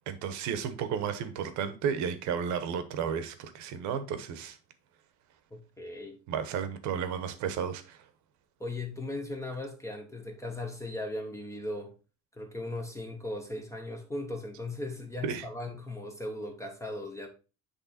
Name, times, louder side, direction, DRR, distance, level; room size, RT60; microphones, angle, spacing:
voice 1, 0.1-4.6 6.3-8.0 15.2-15.4, right 7 dB, 60° right, 1.0 m, -33 dB
voice 2, 5.5-6.2 8.6-11.9 12.3-17.3, left 2 dB, 10° left, 0.7 m, -38 dB
8.3 x 3.4 x 4.1 m
cardioid pair, 160°, 32 cm